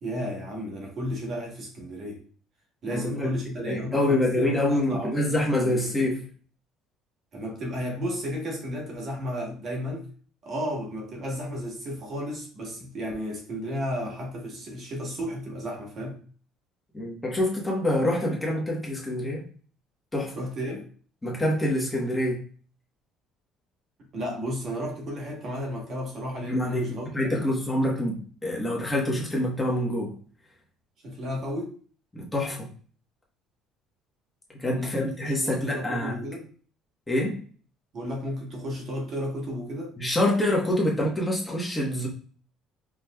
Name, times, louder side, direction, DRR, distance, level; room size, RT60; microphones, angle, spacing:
voice 1, 0.0-2.2 2.8-5.9 7.3-10.1 10.4-16.2 20.3-20.9 24.1-27.5 31.0-31.8 34.8-36.5 37.9-39.9, equal, 45° right, 1.3 m, -33 dB
voice 2, 2.9-3.3 3.6-6.2 16.9-19.5 20.1-20.3 21.2-22.4 26.5-30.2 32.1-32.7 34.5-36.2 37.1-37.4 40.0-42.1, left 1 dB, 15° left, 1.1 m, -26 dB
4.9 x 3.1 x 2.3 m
cardioid pair, 125°, 0 cm